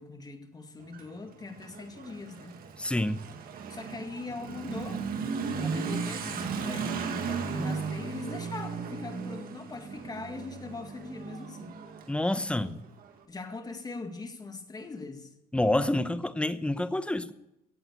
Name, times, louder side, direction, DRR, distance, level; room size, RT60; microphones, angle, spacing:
voice 1, 0.0-2.6 3.7-5.0 5.6-11.8 13.3-15.3, left 3 dB, 25° left, 2.1 m, -41 dB
Motorcycle / Accelerating revving vroom, 0.8-13.1, right 5 dB, 60° right, 2.0 m, -36 dB
voice 2, 2.8-3.2 12.1-12.8 15.5-17.3, left 1 dB, 5° left, 0.9 m, -28 dB
17.0 x 8.0 x 8.3 m
cardioid pair, 110°, 17 cm